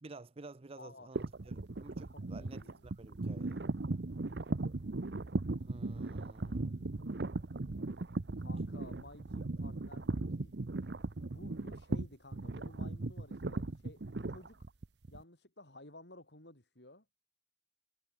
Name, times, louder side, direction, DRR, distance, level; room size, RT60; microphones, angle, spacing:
voice 1, 0.0-3.7 5.6-6.8, right 3 dB, 35° right, 0.6 m, -52 dB
voice 2, 0.8-1.1 2.1-2.9 6.4-7.4 8.4-10.5 11.2-14.7 15.1-17.1, left 2 dB, 70° left, 7.8 m, -55 dB
sound 1, 1.1-15.2, right 2 dB, 70° right, 0.8 m, -38 dB
head